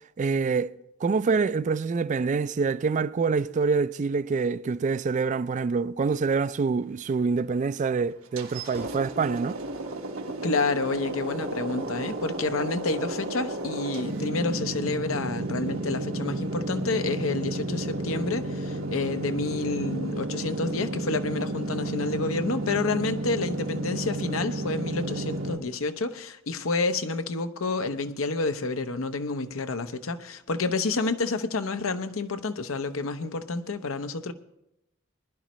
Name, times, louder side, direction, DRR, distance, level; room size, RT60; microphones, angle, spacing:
voice 1, 0.2-0.7 1.0-9.6, right 4 dB, 35° right, 0.3 m, -26 dB
sound 1, 8.4-25.6, right 2 dB, 90° right, 1.6 m, -32 dB
voice 2, 10.3-34.3, left 3 dB, 80° left, 0.8 m, -29 dB
20.0 x 11.5 x 3.1 m
head